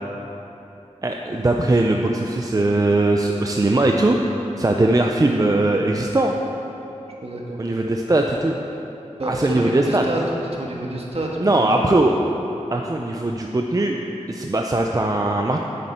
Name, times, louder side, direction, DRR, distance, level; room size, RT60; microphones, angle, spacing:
voice 1, 1.0-4.2 4.6-6.4 7.6-8.6 9.2-10.0 11.4-12.2 12.7-14.0 14.3-15.6, right 2 dB, 30° right, 2 dB, 0.5 m, -20 dB
voice 2, 7.2-7.6 9.2-10.2 10.5-12.1, right 1 dB, 55° right, -2 dB, 1.5 m, -29 dB
9.9 x 8.3 x 4.4 m, 3.0 s
wide cardioid pair, 75°, 13 cm